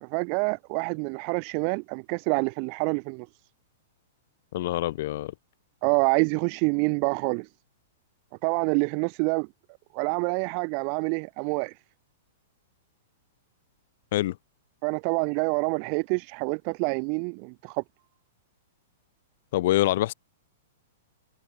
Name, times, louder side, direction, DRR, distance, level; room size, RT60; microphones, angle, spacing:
voice 1, 0.0-3.3 5.8-7.5 8.4-9.5 9.9-11.7 14.8-17.8, right 40 dB or more, 45° right, 1.1 m, -27 dB
voice 2, 4.5-5.3 14.1-14.4 19.5-20.1, left 15 dB, 60° left, 1.5 m, -25 dB
hypercardioid pair, 135°, 0 cm